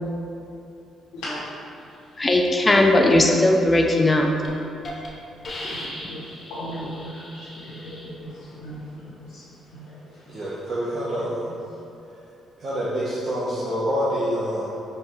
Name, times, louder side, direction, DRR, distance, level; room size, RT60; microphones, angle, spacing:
voice 1, 1.1-2.1 5.3-10.6 11.5-11.6, equal, 90° left, -10 dB, 0.8 m, -38 dB
voice 2, 2.2-4.3, left 1 dB, 20° left, 2 dB, 0.4 m, -18 dB
Hiss, 4.4-4.5 4.8-5.1 5.4-8.1, left 1 dB, 40° left, 0.8 m, -37 dB
voice 3, 10.3-11.5 12.6-14.7, equal, 55° right, -9 dB, 0.8 m, -26 dB
4.6 x 3.3 x 3.0 m, 2.7 s
cardioid pair, 90°, 0 cm